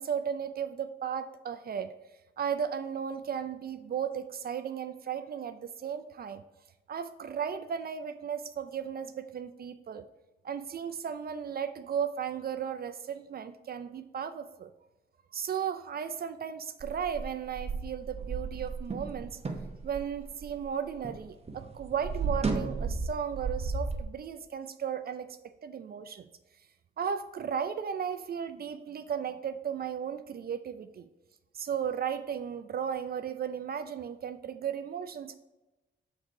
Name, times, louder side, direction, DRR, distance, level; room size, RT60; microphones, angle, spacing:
voice 1, 0.0-1.9 2.4-6.4 6.9-10.1 10.4-14.7 15.3-19.4 19.8-26.3 27.0-31.1 31.5-35.3, right 8 dB, 50° right, 10 dB, 0.4 m, -35 dB
sound 1, 16.8-21.2 21.5-24.0, right 4 dB, 30° right, 0.8 m, -34 dB
6.3 x 3.8 x 4.4 m, 1.0 s
cardioid pair, 85°, 20 cm